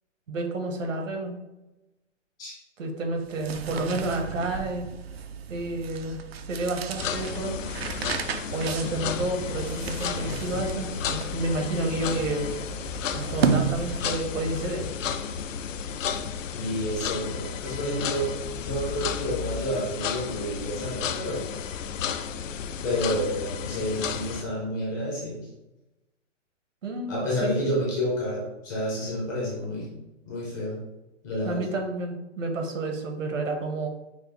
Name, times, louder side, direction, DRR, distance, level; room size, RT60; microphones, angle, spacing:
voice 1, 0.3-1.3 2.8-4.9 5.5-6.2 6.4-7.6 8.5-12.5 13.1-14.8 26.8-27.7 31.4-33.9, right 2 dB, 80° right, 3 dB, 1.2 m, -30 dB
sound 1, 3.2-14.4, right 6 dB, 55° right, 0.4 m, -33 dB
sound 2, 7.0-24.4, left 7 dB, 85° left, 0.5 m, -33 dB
voice 2, 16.5-18.3 18.6-21.4 22.8-25.4 27.1-29.9 30.3-30.8 31.2-31.6, equal, 15° left, -6 dB, 0.7 m, -29 dB
5.6 x 2.1 x 3.2 m, 1.0 s
hypercardioid pair, 165°, 38 cm